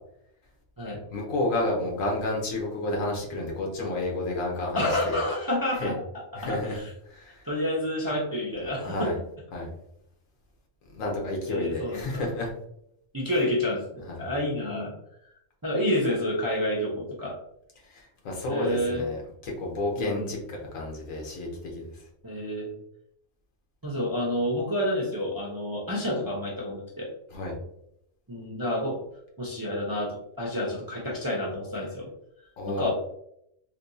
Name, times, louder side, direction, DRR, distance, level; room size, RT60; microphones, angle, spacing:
voice 1, 1.1-5.2 5.8-5.9 6.3-6.8 7.1-7.5 8.8-9.2 9.5-9.7 10.9-12.5 14.1-14.2 17.9-21.9 27.3-27.6 32.6-32.9, left 2 dB, 85° left, 0 dB, 1.3 m, -30 dB
voice 2, 4.7-6.0 6.3-6.9 7.4-9.1 11.5-12.2 13.1-14.9 15.6-17.4 18.5-19.0 20.0-20.3 22.2-22.7 23.8-27.1 28.3-29.0 29.4-32.1 32.7-32.9, left 1 dB, 25° right, -5 dB, 0.5 m, -29 dB
3.4 x 2.7 x 2.6 m, 0.75 s
omnidirectional pair, 1.3 m